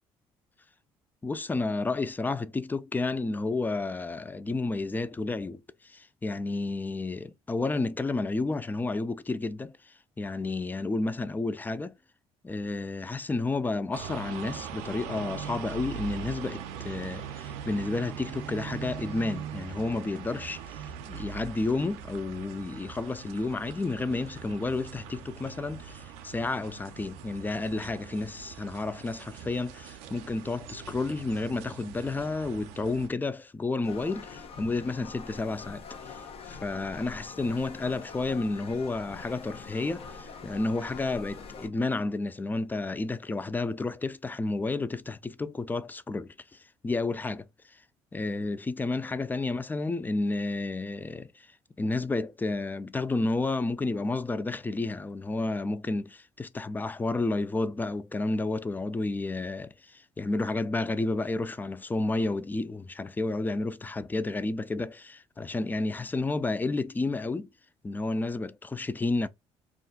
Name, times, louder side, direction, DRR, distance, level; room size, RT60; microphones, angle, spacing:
voice 1, 1.2-11.9 12.4-47.8 48.1-51.5 51.8-67.5 67.8-69.3, left 3 dB, 15° left, 0.3 m, -31 dB
sound 1, 13.9-33.1, right 8 dB, 85° right, 0.4 m, -41 dB
sound 2, 33.8-41.7, left 5 dB, 50° left, 0.7 m, -44 dB
2.5 x 2.3 x 3.6 m
supercardioid pair, 70°, 13 cm